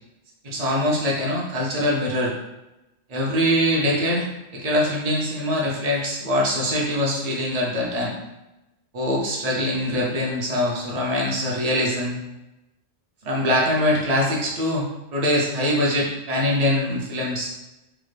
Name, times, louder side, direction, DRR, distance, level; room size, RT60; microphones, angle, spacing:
voice 1, 0.4-2.3 3.1-4.3 4.5-8.1 8.9-12.2 13.2-14.9 15.1-17.5, left 1 dB, 55° right, -3 dB, 0.4 m, -23 dB
3.4 x 2.1 x 3.2 m, 0.97 s
omnidirectional pair, 1.5 m